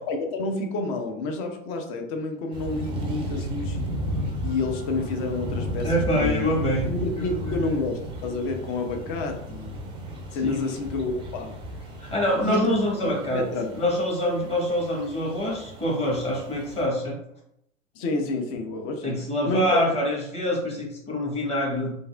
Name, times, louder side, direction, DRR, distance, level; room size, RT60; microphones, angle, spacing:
voice 1, 0.1-3.9 4.4-6.5 6.9-9.8 10.3-11.5 12.4-12.8 13.3-13.7 17.9-19.8, left 3 dB, 35° left, 3 dB, 0.6 m, -29 dB
sound 1, 2.5-16.9, equal, 15° right, 0.4 m, -34 dB
voice 2, 5.8-7.8 10.4-10.6 12.0-13.4 13.7-17.2 19.0-22.0, equal, 15° left, -3 dB, 1.1 m, -26 dB
3.3 x 2.5 x 2.3 m, 0.78 s
figure-of-eight pair, 85°, 38 cm